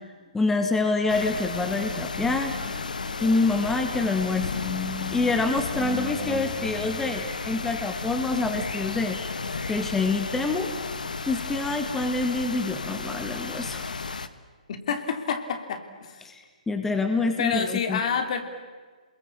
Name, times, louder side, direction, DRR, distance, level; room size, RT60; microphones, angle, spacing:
voice 1, 0.3-9.2 9.7-10.7 11.3-13.9 16.2-18.0, left 3 dB, 5° left, 5 dB, 1.9 m, -26 dB
sound 1, 1.1-14.3, left 4 dB, 80° left, 1.5 m, -33 dB
voice 2, 14.7-16.2 17.4-18.4, left 6 dB, 55° left, 7 dB, 3.0 m, -28 dB
29.0 x 22.0 x 8.6 m, 1.5 s
figure-of-eight pair, 135°, 4 cm